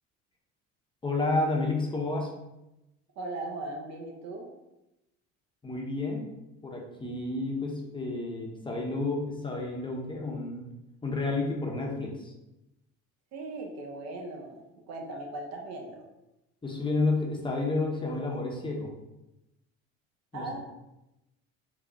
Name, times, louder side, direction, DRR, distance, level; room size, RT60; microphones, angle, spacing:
voice 1, 1.0-2.3 5.6-6.3 6.6-10.7 11.0-12.3 16.6-18.9 20.3-20.4, left 2 dB, 15° left, -1 dB, 0.7 m, -30 dB
voice 2, 3.2-4.5 13.3-14.6 14.9-16.1 20.3-20.6, right 2 dB, 55° right, 1 dB, 0.7 m, -38 dB
3.5 x 2.3 x 3.7 m, 0.93 s
supercardioid pair, 100°, 32 cm